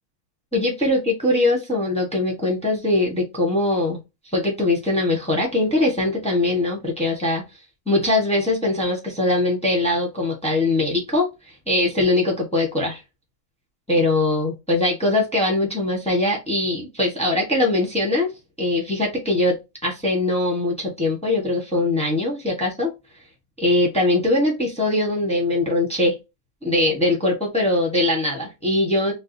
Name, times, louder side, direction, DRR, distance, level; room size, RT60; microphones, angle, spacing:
voice 1, 0.5-4.0 4.3-7.4 7.9-11.3 11.7-13.0 13.9-18.3 18.6-19.6 19.8-22.9 23.6-26.2 26.6-29.1, left 2 dB, 5° left, 0.5 m, -21 dB
4.6 x 2.1 x 2.6 m
omnidirectional pair, 2.2 m